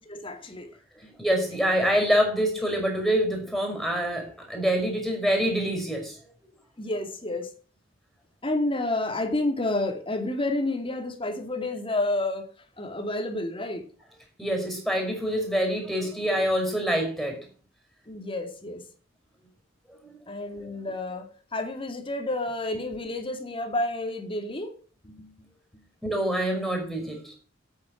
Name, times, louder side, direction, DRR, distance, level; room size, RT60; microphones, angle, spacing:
voice 1, 0.1-0.7 1.0-1.1 6.8-7.5 8.4-12.5 12.8-13.8 18.1-18.8 20.3-24.7 25.0-25.3, left 2 dB, 25° left, 2.3 m, -30 dB
voice 2, 1.2-6.2 14.4-17.4 20.0-20.2 20.6-20.8 26.0-27.3, equal, ahead, 5.2 m, -26 dB
9.0 x 8.9 x 8.7 m
head